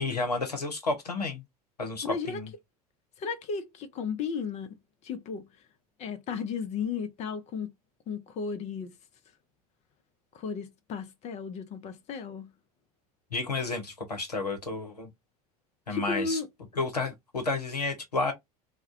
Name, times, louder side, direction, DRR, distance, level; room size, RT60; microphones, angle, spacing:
voice 1, 0.0-1.4 1.8-2.5 13.3-15.1 15.9-16.4 16.8-18.3, left 3 dB, 90° left, 0.7 m, -31 dB
voice 2, 2.0-2.4 3.2-4.8 5.0-5.5 6.0-7.7 8.1-8.9 10.3-12.5 15.9-16.5, left 5 dB, 35° left, 0.6 m, -34 dB
2.3 x 2.1 x 2.5 m
figure-of-eight pair, 75°, 20 cm